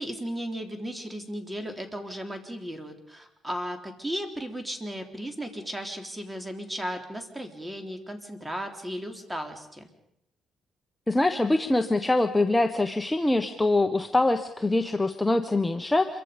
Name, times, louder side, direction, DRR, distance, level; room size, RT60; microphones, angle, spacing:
voice 1, 0.0-9.9, equal, 10° right, 5 dB, 3.5 m, -35 dB
voice 2, 11.1-16.2, left 2 dB, 10° left, 6 dB, 1.2 m, -24 dB
27.0 x 23.5 x 5.3 m, 0.82 s
cardioid pair, 90°, 0 cm